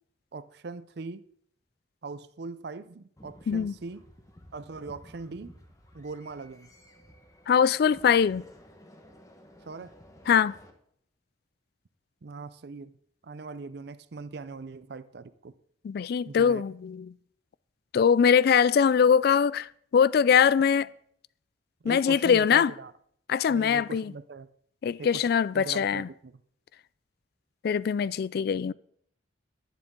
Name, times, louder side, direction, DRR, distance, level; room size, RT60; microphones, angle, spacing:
voice 1, 0.3-1.2 2.0-4.0 4.5-5.5 5.9-6.7 9.6-10.0 12.2-12.9 13.2-15.5 16.3-16.6 21.8-22.9 23.5-24.5 25.0-25.2 25.5-26.4, right 3 dB, 60° right, 0.5 m, -40 dB
sound 1, 3.2-10.7, equal, 20° left, 1.2 m, -53 dB
voice 2, 7.5-8.4 10.3-10.6 15.8-17.1 17.9-20.9 21.8-22.7 23.3-24.1 24.8-26.1 27.6-28.7, left 7 dB, 55° left, 0.3 m, -22 dB
11.0 x 10.5 x 3.7 m
head